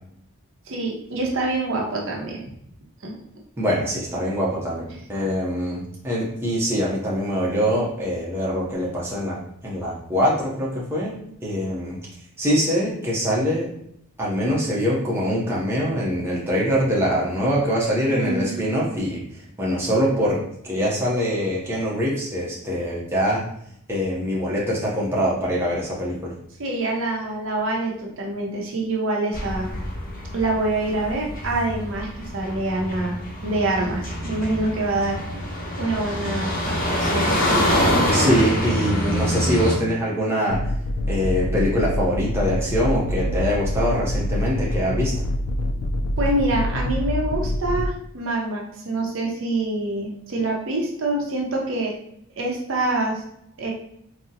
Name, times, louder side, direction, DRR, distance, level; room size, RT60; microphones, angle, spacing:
voice 1, 0.7-2.4 3.0-3.1 4.9-5.0 18.1-18.6 26.6-29.7 30.3-35.2 35.8-37.3 46.2-51.9 52.4-53.2 53.6-53.7, right 2 dB, 60° right, -1 dB, 0.6 m, -26 dB
voice 2, 3.6-9.4 9.6-12.0 12.4-13.7 14.2-19.2 19.6-20.4 20.6-23.4 23.9-26.3 38.1-40.6 41.1-45.1, equal, 10° right, -6 dB, 0.6 m, -23 dB
sound 1, 29.3-39.8, equal, 40° left, 0.7 m, -25 dB
sound 2, 40.5-47.9, left 1 dB, 75° left, 0.3 m, -25 dB
3.7 x 2.0 x 2.7 m, 0.73 s
head